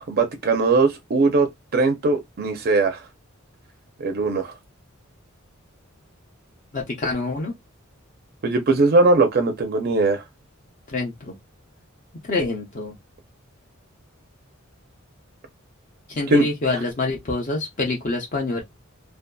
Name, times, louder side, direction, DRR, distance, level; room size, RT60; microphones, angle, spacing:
voice 1, 0.0-3.0 4.0-4.5 8.4-10.2 16.3-16.5, right 3 dB, 50° right, 0.4 m, -20 dB
voice 2, 6.7-7.5 10.9-11.3 12.3-13.0 16.1-18.6, left 2 dB, 40° left, 0.5 m, -26 dB
2.6 x 2.3 x 2.2 m
head